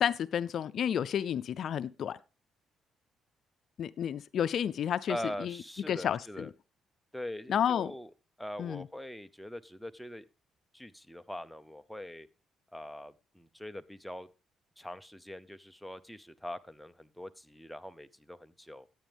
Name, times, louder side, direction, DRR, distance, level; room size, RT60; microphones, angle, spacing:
voice 1, 0.0-2.2 3.8-5.5 5.9-6.5 7.5-7.9 8.6-8.9, left 9 dB, 65° left, 0.5 m, -31 dB
voice 2, 5.1-6.5 7.1-8.1 8.4-10.3 10.7-12.3 12.7-14.3 14.8-18.9, left 1 dB, ahead, 0.7 m, -42 dB
14.5 x 9.0 x 3.5 m
cardioid pair, 90°, 0 cm